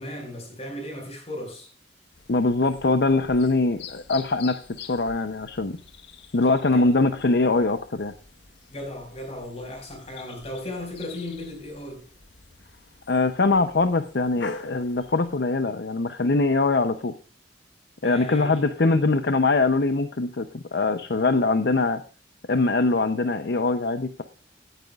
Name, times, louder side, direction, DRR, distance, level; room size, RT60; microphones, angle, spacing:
voice 1, 0.0-1.7 6.7-6.9 8.7-12.0 18.0-19.0, left 1 dB, 35° left, 4.9 m, -36 dB
sound 1, 2.1-15.4, left 5 dB, 85° left, 1.3 m, -45 dB
voice 2, 2.3-5.8 6.3-8.1 13.1-17.1 18.0-22.0 22.5-24.2, left 3 dB, 65° left, 0.6 m, -22 dB
17.0 x 9.1 x 2.4 m
head